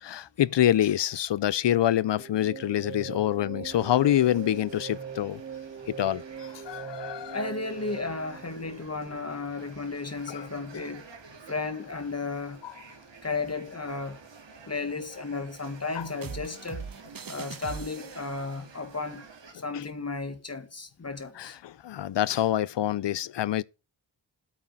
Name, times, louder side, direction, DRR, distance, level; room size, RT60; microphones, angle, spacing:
voice 1, 0.0-5.4 5.9-7.4 10.3-10.5 16.0-16.1 19.7-19.8 21.4-23.6, left 12 dB, 70° left, 0.5 m, -26 dB
sound 1, 2.1-9.3, right 7 dB, 30° right, 0.7 m, -41 dB
sound 2, 3.7-19.5, right 5 dB, 75° right, 2.5 m, -51 dB
voice 2, 7.3-11.1 11.5-12.6 13.2-14.2 14.7-16.8 17.3-19.3 19.5-21.6, left 3 dB, 35° left, 1.8 m, -34 dB
sound 3, 16.2-18.5, right 6 dB, 50° right, 1.0 m, -40 dB
8.9 x 7.4 x 6.0 m
wide cardioid pair, 85°, 44 cm